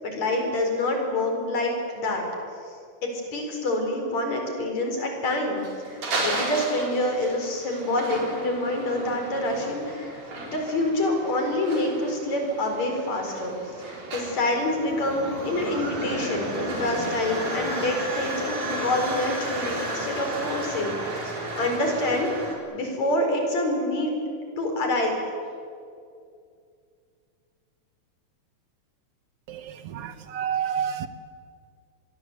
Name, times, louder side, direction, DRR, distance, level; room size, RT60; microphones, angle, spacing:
voice 1, 0.0-2.2 2.7-2.8 3.0-13.6 13.8-24.1 24.6-25.2, left 1 dB, 60° left, 3 dB, 5.9 m, -27 dB
sound 1, 5.6-22.5, right 1 dB, 85° right, 5.7 m, -33 dB
voice 2, 29.5-31.1, right 8 dB, 65° right, 11 dB, 1.5 m, -30 dB
26.5 x 21.5 x 8.2 m, 2.3 s
omnidirectional pair, 3.6 m